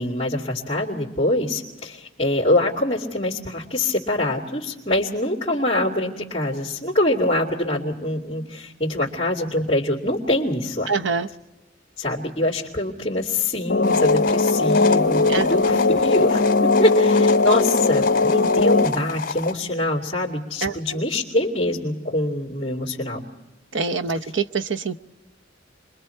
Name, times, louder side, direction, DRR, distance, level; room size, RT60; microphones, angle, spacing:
voice 1, 0.0-10.9 12.0-23.2, left 1 dB, 30° left, -6 dB, 2.6 m, -24 dB
voice 2, 10.9-11.3 15.3-15.5 20.6-21.0 23.7-25.0, right 4 dB, 80° right, 10 dB, 0.9 m, -25 dB
sound 1, 13.7-18.9, left 3 dB, 65° left, 1.1 m, -19 dB
sound 2, 13.8-19.5, left 4 dB, 45° left, 2.9 m, -29 dB
29.5 x 22.5 x 4.5 m, 1.1 s
head